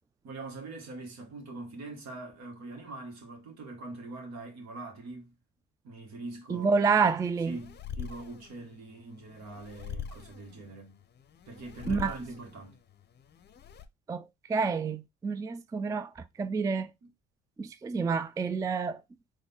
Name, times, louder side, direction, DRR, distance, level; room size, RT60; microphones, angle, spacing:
voice 1, 0.2-5.3 5.8-6.8 7.4-11.0 11.5-12.8 17.0-17.1, right 2 dB, 65° right, 1.9 m, -43 dB
voice 2, 6.5-7.6 11.9-12.1 14.1-16.1 16.4-16.9 17.6-19.0, right 5 dB, 10° right, 0.3 m, -28 dB
sound 1, 6.9-13.9, left 7 dB, 35° left, 0.7 m, -44 dB
3.9 x 3.1 x 3.6 m
supercardioid pair, 80°, 29 cm